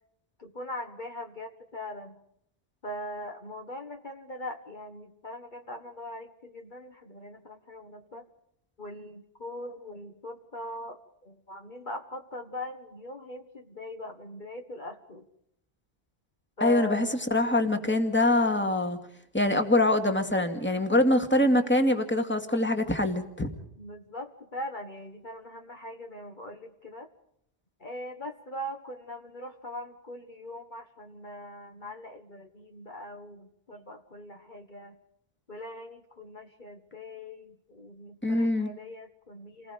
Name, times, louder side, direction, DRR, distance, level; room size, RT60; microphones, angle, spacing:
voice 1, 0.4-2.2 2.8-8.3 8.8-15.3 16.6-17.2 23.8-27.1 27.8-35.0 35.5-39.7, left 1 dB, 45° left, 4 dB, 1.7 m, -41 dB
voice 2, 16.6-19.0 19.3-23.5 38.2-38.7, left 1 dB, 10° left, 5 dB, 2.2 m, -24 dB
29.5 x 20.0 x 5.2 m, 0.73 s
omnidirectional pair, 1.1 m